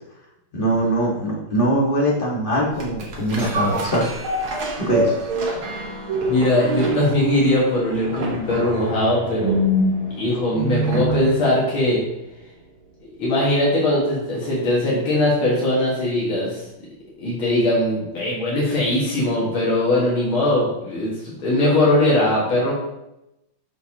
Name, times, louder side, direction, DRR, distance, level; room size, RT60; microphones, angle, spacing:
voice 1, 0.5-4.1 4.8-5.1, right 1 dB, 30° left, -3 dB, 1.4 m, -21 dB
sound 1, 2.8-11.4 11.8-11.9, equal, 80° right, 2.1 m, -25 dB
voice 2, 6.3-9.6 10.2-12.0 13.2-16.6 17.2-22.7, left 1 dB, 75° left, -6 dB, 2.6 m, -20 dB
6.6 x 6.4 x 2.9 m, 0.89 s
omnidirectional pair, 2.3 m